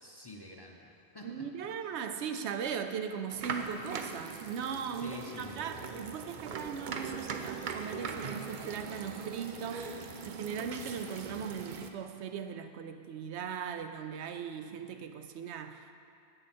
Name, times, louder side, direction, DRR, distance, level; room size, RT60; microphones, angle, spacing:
voice 1, 0.0-1.4 5.0-5.6, left 2 dB, 25° left, -1 dB, 0.6 m, -47 dB
voice 2, 1.2-16.0, right 7 dB, 80° right, 8 dB, 0.9 m, -39 dB
sound 1, 3.3-11.9, right 5 dB, 55° right, 0.7 m, -41 dB
9.7 x 8.7 x 4.3 m, 2.4 s
omnidirectional pair, 1.1 m